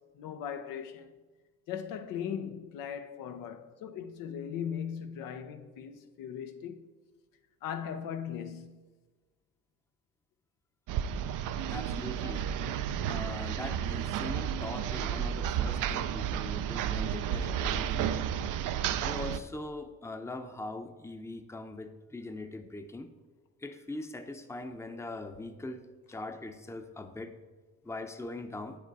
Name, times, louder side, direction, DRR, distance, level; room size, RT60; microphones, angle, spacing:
voice 1, 0.2-1.1 1.7-6.8 7.6-8.8, left 8 dB, 80° left, 0.7 m, -38 dB
sound 1, 10.9-19.4, right 9 dB, 70° right, 0.5 m, -32 dB
voice 2, 11.7-12.5 12.9-18.2 19.0-23.1 23.6-27.3 27.8-28.8, left 2 dB, 10° left, 0.7 m, -41 dB
8.1 x 5.0 x 4.7 m
supercardioid pair, 65°, 33 cm